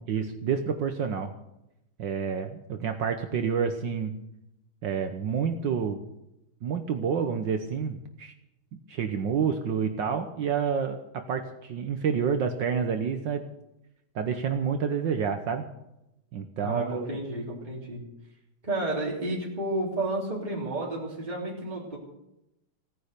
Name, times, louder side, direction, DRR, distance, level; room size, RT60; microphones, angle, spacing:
voice 1, 0.1-1.3 2.0-4.2 4.8-6.0 6.6-8.3 8.9-13.4 14.1-15.7 16.3-17.1, right 6 dB, 65° right, 6 dB, 1.6 m, -28 dB
voice 2, 16.6-18.0 18.6-22.0, right 1 dB, 20° right, -4 dB, 3.3 m, -31 dB
17.0 x 9.9 x 6.7 m, 0.86 s
omnidirectional pair, 2.3 m